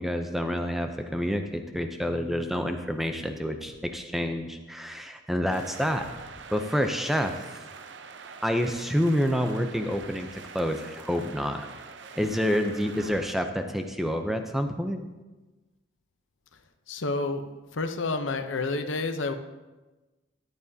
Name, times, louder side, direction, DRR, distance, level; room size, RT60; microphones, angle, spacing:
voice 1, 0.0-6.1 6.5-7.5 8.4-11.7 12.2-15.1, equal, ahead, 5 dB, 0.6 m, -28 dB
sound 1, 5.5-13.3, right 5 dB, 60° right, 0.6 m, -45 dB
voice 2, 16.9-19.3, left 3 dB, 75° left, 7 dB, 0.8 m, -30 dB
14.0 x 10.5 x 2.8 m, 1.2 s
head